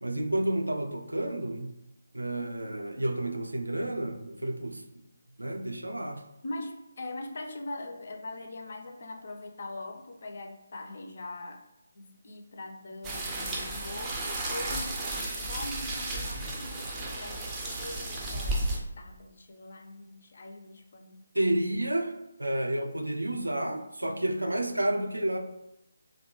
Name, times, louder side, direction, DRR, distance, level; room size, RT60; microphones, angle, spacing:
voice 1, 0.0-1.7 2.1-4.8 5.4-6.2 21.3-25.4, right 1 dB, 80° right, 6 dB, 0.3 m, -30 dB
voice 2, 6.4-11.6 12.0-21.2, left 2 dB, 50° left, 4 dB, 0.4 m, -42 dB
sound 1, 13.0-18.8, right 2 dB, 15° right, 0.4 m, -33 dB
2.6 x 2.1 x 2.9 m, 0.89 s
figure-of-eight pair, 150°, 0 cm